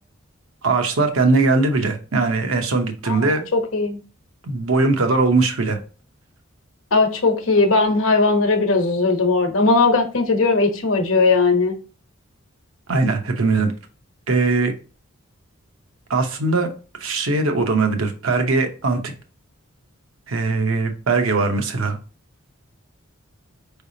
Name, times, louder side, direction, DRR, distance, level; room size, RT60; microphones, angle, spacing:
voice 1, 0.6-3.4 4.4-5.8 12.9-13.7 14.3-14.7 16.1-16.7 17.0-19.0 20.3-22.0, right 3 dB, 80° right, 5 dB, 0.8 m, -20 dB
voice 2, 3.1-4.0 6.9-11.7, left 3 dB, 75° left, 5 dB, 0.9 m, -18 dB
4.8 x 3.4 x 2.7 m, 0.36 s
head